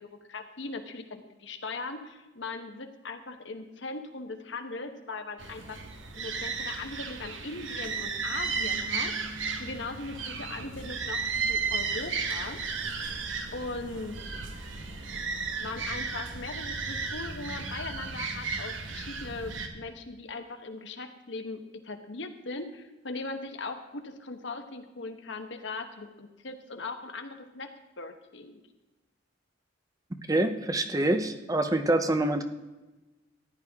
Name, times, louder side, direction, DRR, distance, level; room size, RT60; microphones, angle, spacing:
voice 1, 0.0-5.8 6.2-12.6 13.5-14.4 15.6-28.6, left 3 dB, 65° left, 6 dB, 1.2 m, -39 dB
sound 1, 5.4-19.7, right 4 dB, 75° right, 1.3 m, -34 dB
voice 2, 30.3-32.4, right 1 dB, 20° right, 8 dB, 0.7 m, -26 dB
14.0 x 10.5 x 3.6 m, 1.1 s
head